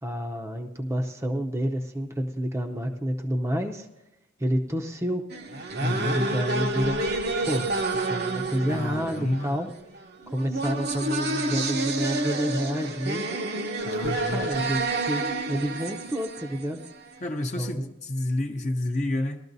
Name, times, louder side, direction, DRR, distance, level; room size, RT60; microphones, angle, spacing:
voice 1, 0.0-3.9 4.4-5.2 6.1-7.0 7.5-7.7 8.1-9.7 10.3-13.2 14.0-16.8 17.6-17.9, equal, 15° right, 3 dB, 0.6 m, -29 dB
sound 1, 5.3-17.2, right 2 dB, 50° right, 0.8 m, -29 dB
voice 2, 5.8-6.2 8.7-9.5 13.8-14.7 17.2-19.4, left 1 dB, 35° left, 3 dB, 0.6 m, -29 dB
20.0 x 12.5 x 2.7 m, 0.97 s
head